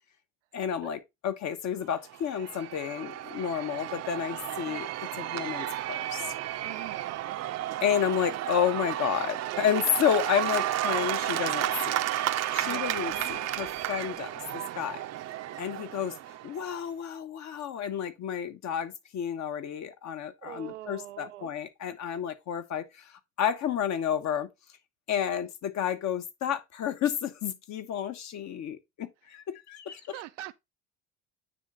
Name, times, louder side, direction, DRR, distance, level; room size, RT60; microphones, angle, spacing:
voice 1, 0.5-6.3 7.8-12.1 12.5-15.0 15.6-16.2 16.4-24.5 25.1-30.2, left 9 dB, 50° left, 1.1 m, -31 dB
Cheering / Applause / Crowd, 2.0-16.7, right 13 dB, 45° right, 0.6 m, -32 dB
voice 2, 6.6-7.4 12.6-13.1 20.4-21.5 30.1-30.5, right 16 dB, 90° right, 0.6 m, -43 dB
9.2 x 3.3 x 3.8 m
hypercardioid pair, 70°, 36 cm